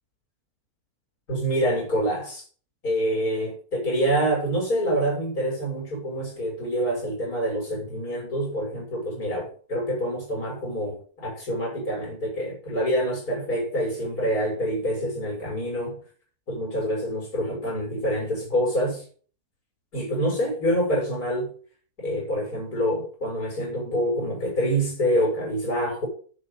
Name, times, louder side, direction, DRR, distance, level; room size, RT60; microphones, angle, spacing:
voice 1, 1.3-2.4 2.8-16.0 16.5-19.0 19.9-21.5 22.0-26.1, equal, 75° left, 7.1 m, -26 dB
9.1 x 7.8 x 7.1 m
omnidirectional pair, 1.6 m